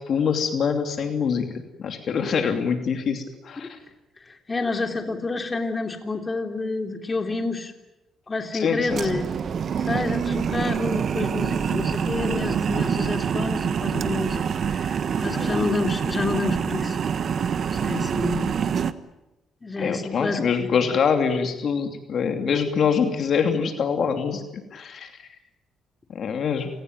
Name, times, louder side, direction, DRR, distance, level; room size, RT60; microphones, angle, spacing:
voice 1, 0.0-3.7 8.5-9.2 15.3-15.7 19.8-24.4 24.7-25.1 26.1-26.7, left 6 dB, 60° left, 6 dB, 2.8 m, -24 dB
voice 2, 4.5-7.7 8.3-9.3 9.8-17.0 17.7-18.5 19.6-20.7, left 3 dB, 25° left, 5 dB, 3.2 m, -28 dB
sound 1, 8.9-18.9, right 7 dB, 55° right, 1.3 m, -26 dB
28.5 x 19.0 x 9.3 m, 0.97 s
cardioid pair, 90°, 0 cm